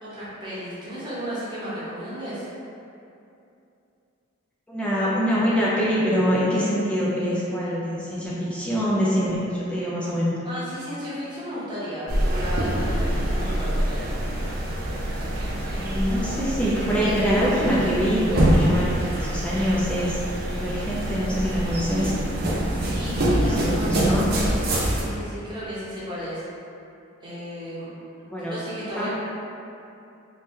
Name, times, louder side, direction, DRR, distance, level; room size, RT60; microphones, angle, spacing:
voice 1, 0.0-2.5 10.4-13.9 22.7-24.2 24.9-26.4 27.2-27.9 28.5-29.1, equal, 25° right, -10 dB, 0.9 m, -34 dB
voice 2, 4.7-10.3 15.4-20.2 20.5-22.1 23.2-24.3 28.3-28.6 28.9-29.1, equal, 5° left, -8 dB, 0.4 m, -24 dB
sound 1, 12.1-25.0, right 1 dB, 50° right, 0.6 m, -25 dB
3.2 x 2.8 x 3.5 m, 2.7 s
head